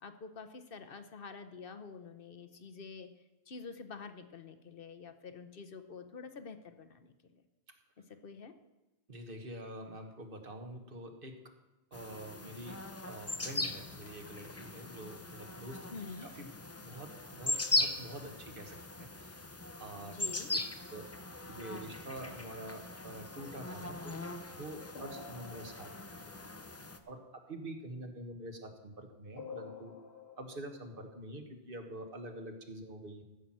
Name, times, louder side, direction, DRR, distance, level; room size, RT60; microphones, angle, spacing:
voice 1, 0.0-3.1 3.5-7.4 8.2-8.5 15.9-16.3 20.1-20.5, left 4 dB, 65° left, 9 dB, 1.1 m, -47 dB
voice 2, 9.1-11.5 11.9-15.9 16.2-16.5 16.8-19.4 19.8-20.1 20.9-21.1 21.5-24.3 24.6-26.2 27.1-29.9 30.4-33.2, right 1 dB, 60° right, 4 dB, 1.6 m, -46 dB
sound 1, 11.9-27.0, left 2 dB, 20° left, 0.5 m, -39 dB
sound 2, 24.5-27.3 29.4-31.1, left 5 dB, 85° left, 2.3 m, -51 dB
14.0 x 5.8 x 7.6 m, 1.0 s
omnidirectional pair, 1.0 m